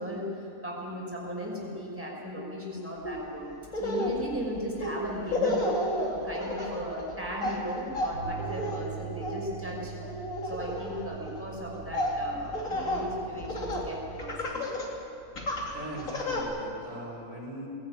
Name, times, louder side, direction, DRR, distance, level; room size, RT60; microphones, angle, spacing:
voice 1, 0.0-3.5 3.7-9.9 10.4-14.7, equal, 10° right, -3 dB, 5.6 m, -37 dB
Laughter, 3.0-3.2 3.7-13.9 14.2-14.9 15.4-16.4, left 1 dB, 65° left, 3.5 m, -32 dB
Bass guitar, 8.1-14.4, right 9 dB, 80° left, 5.9 m, -43 dB
voice 2, 15.7-17.7, equal, 65° right, -2 dB, 5.9 m, -40 dB
21.0 x 18.0 x 9.6 m, 2.7 s
omnidirectional pair, 1.5 m